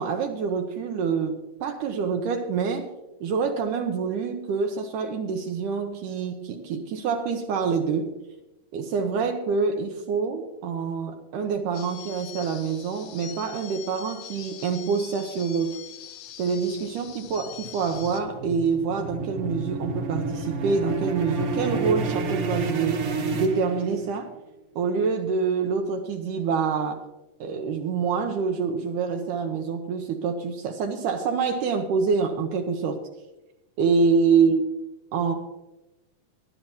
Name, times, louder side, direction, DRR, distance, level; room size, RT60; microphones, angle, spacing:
voice 1, 0.0-2.9 3.2-8.1 8.7-15.8 16.4-23.0 23.3-24.3 24.8-27.0 27.4-33.0 33.8-34.6 35.1-35.3, right 5 dB, 75° right, 4 dB, 2.2 m, -26 dB
sound 1, 11.7-18.2, left 11 dB, 80° left, 1.5 m, -43 dB
sound 2, 17.0-24.3, right 3 dB, 55° right, 1.8 m, -30 dB
18.0 x 11.0 x 2.9 m, 0.99 s
omnidirectional pair, 3.9 m